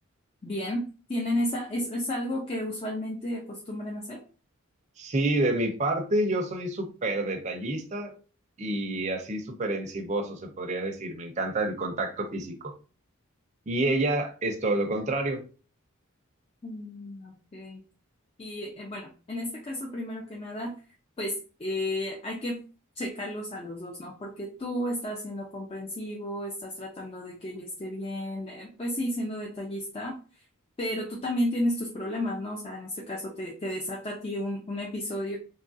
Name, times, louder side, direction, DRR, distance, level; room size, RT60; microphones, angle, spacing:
voice 1, 0.4-0.8 1.1-4.2 16.6-17.8 18.4-20.7 21.2-22.6 23.0-30.2 30.8-35.4, left 1 dB, 25° left, -1 dB, 0.4 m, -33 dB
voice 2, 5.0-8.1 8.6-12.7 13.7-15.4, right 2 dB, 35° right, 3 dB, 0.5 m, -28 dB
2.9 x 2.3 x 2.5 m, 0.36 s
head